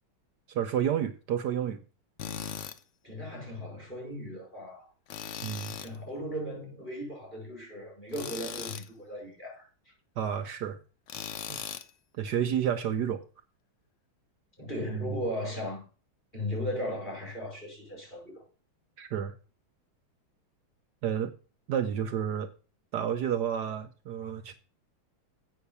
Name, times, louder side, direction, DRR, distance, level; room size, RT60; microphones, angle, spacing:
voice 1, 0.5-1.8 5.4-5.8 10.2-10.8 11.5-11.6 12.2-13.2 14.9-15.2 19.0-19.3 21.0-21.3 21.7-22.5 22.9-24.5, right 9 dB, 65° right, 1.2 m, -30 dB
Tools, 2.2-2.8 5.1-6.0 8.1-8.9 11.1-11.9, left 8 dB, 85° left, 0.6 m, -38 dB
voice 2, 3.0-4.9 5.3-5.4 5.8-9.7 14.6-15.9 16.3-18.4, equal, 20° left, 5.5 m, -37 dB
8.3 x 6.4 x 6.9 m
omnidirectional pair, 2.2 m